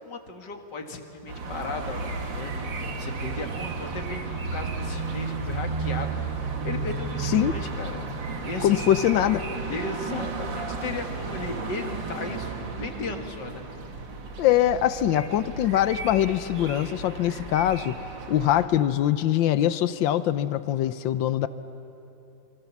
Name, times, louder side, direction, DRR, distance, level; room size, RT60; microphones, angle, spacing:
voice 1, 0.0-6.1 6.6-8.0 8.4-8.8 9.7-13.6 21.4-21.5, left 3 dB, 70° left, 4 dB, 2.6 m, -36 dB
sound 1, 1.3-18.6, right 4 dB, 90° right, 2.6 m, -33 dB
voice 2, 7.2-7.5 8.6-9.5 14.4-18.0 18.3-21.5, left 12 dB, 85° left, 14 dB, 1.5 m, -23 dB
28.0 x 25.5 x 7.2 m, 3.0 s
omnidirectional pair, 2.0 m